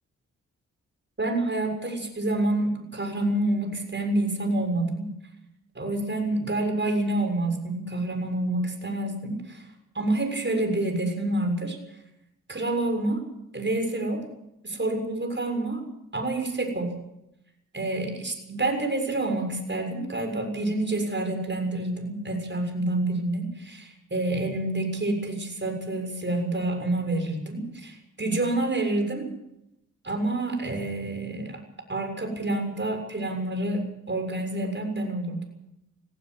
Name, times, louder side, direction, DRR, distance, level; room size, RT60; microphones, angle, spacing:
voice 1, 1.2-5.1 5.7-9.6 9.9-11.8 12.5-13.3 13.5-14.3 14.6-15.8 16.1-16.9 17.7-29.3 30.0-31.6 31.9-35.4, right 2 dB, 35° right, 5 dB, 6.9 m, -28 dB
18.5 x 17.5 x 8.2 m, 0.82 s
cardioid pair, 55°, 32 cm